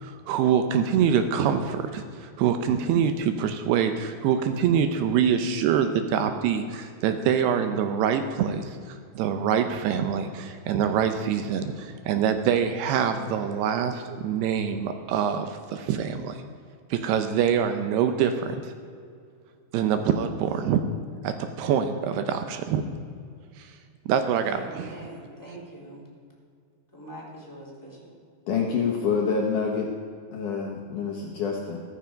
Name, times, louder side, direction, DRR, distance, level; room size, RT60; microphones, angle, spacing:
voice 1, 0.0-16.4 16.9-18.6 19.7-20.8 21.2-22.8 23.6-23.7 24.1-24.9, right 8 dB, 80° right, 8 dB, 2.7 m, -25 dB
voice 2, 24.4-26.0 26.9-28.1, right 1 dB, 5° left, -5 dB, 3.0 m, -42 dB
voice 3, 28.5-29.9 30.3-31.8, left 5 dB, 65° left, -1 dB, 2.2 m, -27 dB
14.5 x 14.0 x 5.2 m, 2.3 s
omnidirectional pair, 4.9 m